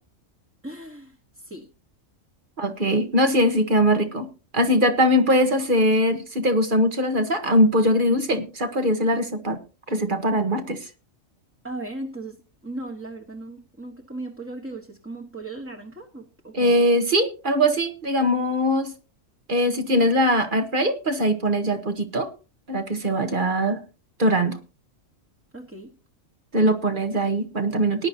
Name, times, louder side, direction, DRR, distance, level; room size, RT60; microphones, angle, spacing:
voice 1, 0.6-1.7 11.6-16.8 25.5-25.9, right 2 dB, 10° right, 0 dB, 1.3 m, -37 dB
voice 2, 2.6-4.3 4.5-9.6 9.9-10.9 16.5-18.9 19.5-22.3 22.7-23.8 24.2-24.6 26.5-28.1, equal, 40° right, 7 dB, 1.4 m, -21 dB
18.0 x 10.5 x 2.8 m, 0.32 s
omnidirectional pair, 1.4 m